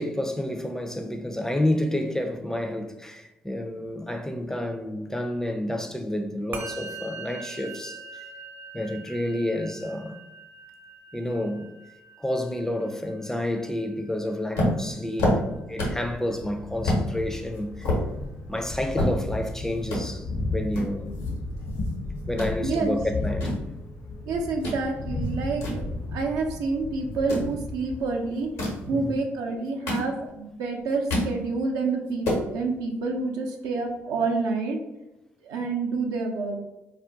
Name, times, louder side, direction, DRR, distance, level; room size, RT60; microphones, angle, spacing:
voice 1, 0.0-8.0 8.7-10.2 11.1-11.7 12.2-15.4 15.7-17.9 18.5-21.2 22.3-23.6 28.9-29.2, left 1 dB, 5° left, 0.4 m, -29 dB
Musical instrument, 6.5-16.1, right 3 dB, 35° right, 0.6 m, -43 dB
sound 1, 14.6-16.1 16.4-16.5 16.8-17.0 17.5-19.5 19.8-20.0 20.7-21.9 22.2-22.5 23.1-24.8 25.2-26.5 27.1-27.5 28.4-28.9 29.5-30.5 30.8-31.3 31.7-31.8 32.1-32.5, left 1 dB, 85° left, 0.9 m, -28 dB
Thunder, 15.9-29.2, left 2 dB, 60° left, 0.7 m, -35 dB
voice 2, 22.6-23.0 24.3-28.5 28.8-34.8 35.4-36.6, right 3 dB, 75° right, 0.5 m, -28 dB
2.4 x 2.2 x 3.8 m
hypercardioid pair, 45°, 6 cm